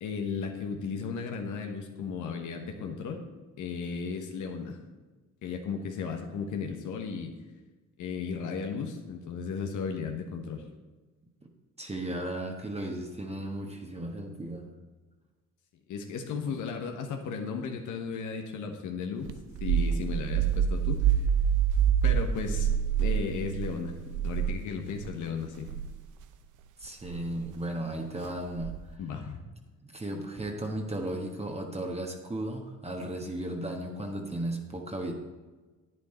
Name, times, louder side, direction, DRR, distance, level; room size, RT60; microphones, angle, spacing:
voice 1, 0.0-3.2 3.6-4.8 5.4-7.3 8.0-10.6 15.9-19.3 19.6-21.2 22.0-22.7 22.9-24.0 24.2-25.7 29.0-29.4, left 5 dB, 80° left, 3 dB, 1.3 m, -35 dB
voice 2, 11.8-14.7 16.5-16.6 26.8-29.0 29.8-35.1, right 1 dB, 20° right, 2 dB, 1.4 m, -35 dB
sound 1, 19.3-25.1 25.6-25.9 27.1-27.4 28.5-29.0, right 8 dB, 85° right, 0.7 m, -27 dB
10.5 x 9.0 x 4.4 m, 1.3 s
cardioid pair, 90°, 30 cm